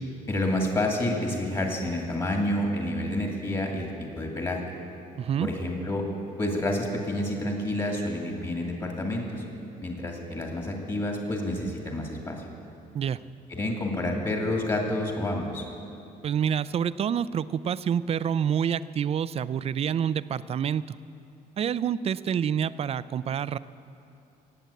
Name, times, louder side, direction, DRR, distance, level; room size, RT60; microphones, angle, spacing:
voice 1, 0.3-4.6 5.4-6.1 6.4-9.4 9.8-12.4 13.5-15.6, left 1 dB, 25° left, 1 dB, 2.1 m, -29 dB
voice 2, 5.2-5.5 12.9-13.2 16.2-20.8 21.6-23.6, right 8 dB, 35° right, 17 dB, 0.4 m, -27 dB
18.0 x 7.9 x 8.3 m, 2.7 s
cardioid pair, 110°, 17 cm